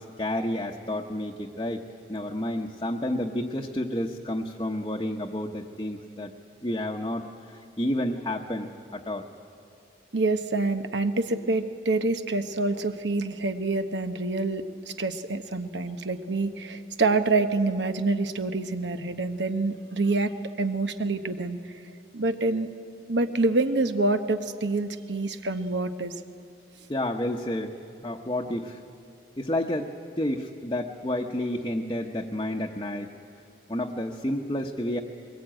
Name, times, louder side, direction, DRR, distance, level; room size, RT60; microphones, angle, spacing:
voice 1, 0.0-6.3 6.6-9.3 26.9-27.7 28.0-28.8 29.4-29.9 30.2-33.1 33.7-35.0, left 1 dB, 25° left, -1 dB, 0.9 m, -30 dB
voice 2, 10.1-21.8 22.1-22.7 23.1-26.1, right 3 dB, 80° right, 8 dB, 1.0 m, -27 dB
22.0 x 19.5 x 8.9 m, 2.4 s
head